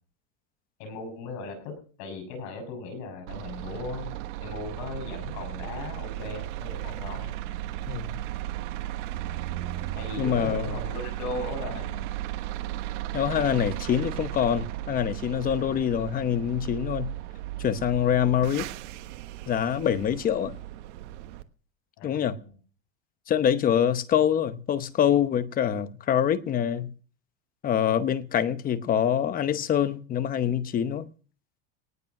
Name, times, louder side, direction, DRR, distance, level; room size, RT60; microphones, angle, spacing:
voice 1, 0.8-4.2 4.4-7.3 9.9-12.1 22.0-22.6, left 3 dB, 55° left, 6.2 m, -37 dB
sound 1, 3.3-21.4, right 14 dB, 75° right, 1.3 m, -35 dB
voice 2, 10.2-10.7 13.1-17.1 17.6-18.7 19.5-20.6 22.0-22.4 23.3-26.9 27.6-31.1, left 9 dB, 25° left, 0.9 m, -25 dB
19.0 x 8.4 x 6.0 m
supercardioid pair, 155°, 36 cm